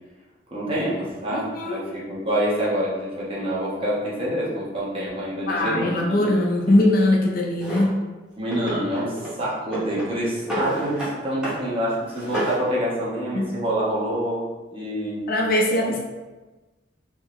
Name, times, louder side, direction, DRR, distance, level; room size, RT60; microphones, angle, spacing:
voice 1, 0.5-6.3 6.7-6.8 8.4-15.3 15.7-15.8, right 1 dB, 30° right, -7 dB, 1.0 m, -27 dB
voice 2, 1.3-1.8 5.5-8.0 13.3-13.5 15.3-16.0, left 1 dB, 55° left, -1 dB, 0.5 m, -21 dB
Drawer open or close, 7.6-7.9 8.5-9.4 9.7-11.2 11.4-11.6 12.0-12.6, right 1 dB, 5° right, 0.9 m, -29 dB
3.7 x 2.8 x 3.0 m, 1.2 s
head